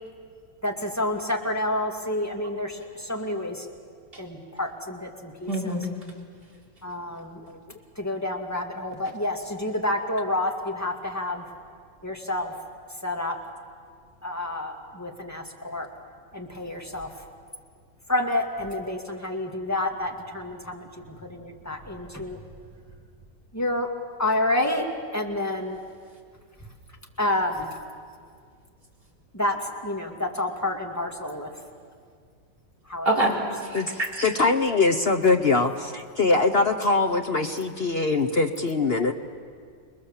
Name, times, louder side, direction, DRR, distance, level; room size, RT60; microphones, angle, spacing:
voice 1, 0.6-3.7 4.2-5.8 6.8-7.5 8.0-11.4 12.0-12.5 13.0-13.4 14.2-15.9 16.3-17.1 18.1-22.4 23.5-23.9 24.2-24.9 25.1-25.8 27.2-27.7 29.3-31.5 32.9-33.2, left 1 dB, 10° left, 2 dB, 2.0 m, -29 dB
voice 2, 5.5-5.8 33.0-33.4 33.6-34.3, right 1 dB, 30° right, -3 dB, 4.0 m, -25 dB
voice 3, 34.2-39.1, left 3 dB, 50° left, 6 dB, 0.8 m, -22 dB
28.5 x 20.5 x 7.3 m, 2.1 s
omnidirectional pair, 2.0 m